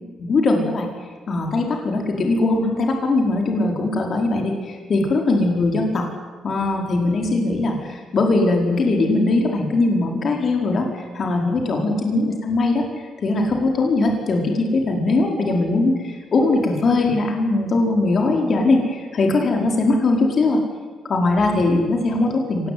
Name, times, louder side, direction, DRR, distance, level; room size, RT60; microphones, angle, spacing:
voice 1, 0.2-0.9 1.3-6.1 6.4-20.6 21.1-22.7, left 2 dB, 50° left, 2 dB, 4.9 m, -20 dB
25.0 x 19.5 x 9.8 m, 1.4 s
cardioid pair, 90°, 0 cm